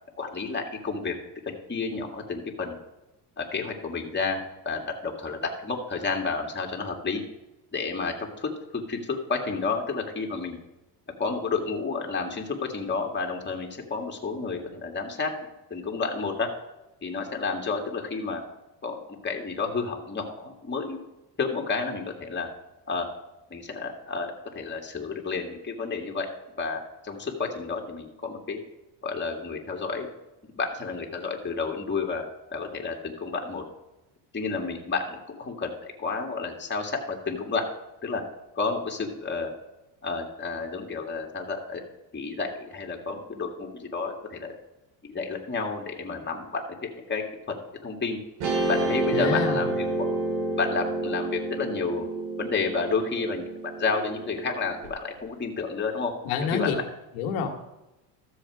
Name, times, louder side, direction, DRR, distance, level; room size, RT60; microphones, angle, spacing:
voice 1, 0.2-1.2 1.7-2.8 3.4-7.2 7.7-10.6 11.2-15.3 15.7-16.5 17.0-18.4 18.8-21.0 21.4-22.5 22.9-23.1 23.5-26.3 26.6-28.6 29.0-30.1 30.4-32.2 32.5-33.6 34.3-37.6 38.0-38.2 38.6-39.5 40.0-41.8 42.1-44.5 45.0-47.5 47.8-48.2 48.7-50.1 50.6-52.1 52.4-56.1 56.5-56.8, left 4 dB, 20° left, 1 dB, 2.2 m, -31 dB
Guitar, 48.4-54.9, right 2 dB, 75° right, 3.2 m, -29 dB
voice 2, 49.1-49.7 56.3-56.8 57.1-57.5, left 6 dB, 80° left, 3 dB, 1.8 m, -27 dB
13.5 x 7.2 x 4.9 m, 0.97 s
supercardioid pair, 100°, 48 cm